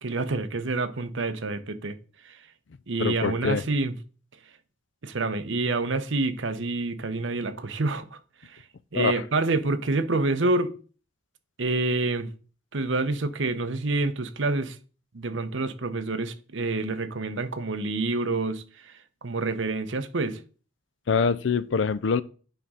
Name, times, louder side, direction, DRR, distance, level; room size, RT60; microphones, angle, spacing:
voice 1, 0.0-2.0 2.2-2.4 2.9-3.9 5.0-8.6 8.9-10.7 11.6-12.3 12.7-14.8 15.1-18.9 19.2-20.4, right 3 dB, 70° right, 0.8 m, -27 dB
voice 2, 3.0-3.6 8.9-9.2 21.1-22.2, left 5 dB, 65° left, 0.4 m, -24 dB
9.2 x 3.6 x 5.5 m
head